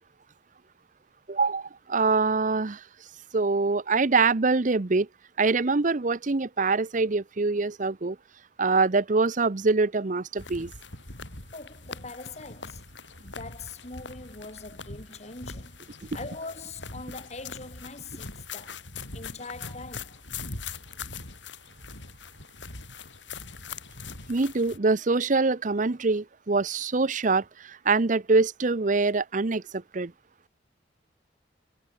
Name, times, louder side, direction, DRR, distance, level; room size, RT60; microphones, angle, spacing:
voice 1, 1.3-2.8 3.3-5.1 5.4-8.2 8.6-10.7 24.3-30.1, right 3 dB, 45° right, 0.7 m, -24 dB
sound 1, 10.4-24.8, left 4 dB, 85° left, 6.8 m, -42 dB
voice 2, 11.5-12.8 13.2-15.8 16.1-18.8 19.1-20.2, left 3 dB, 40° left, 3.6 m, -42 dB
head